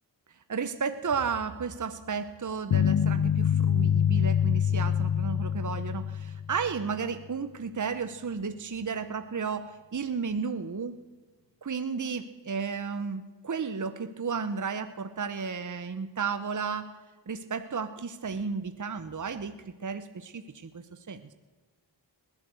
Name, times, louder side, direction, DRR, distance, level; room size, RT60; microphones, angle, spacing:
voice 1, 0.5-11.0 11.6-16.9 17.3-21.3, right 5 dB, 40° right, 11 dB, 1.0 m, -33 dB
sound 1, 2.7-6.9, left 8 dB, 55° left, 0.8 m, -25 dB
20.0 x 8.8 x 7.8 m, 1.3 s
cardioid pair, 45°, 44 cm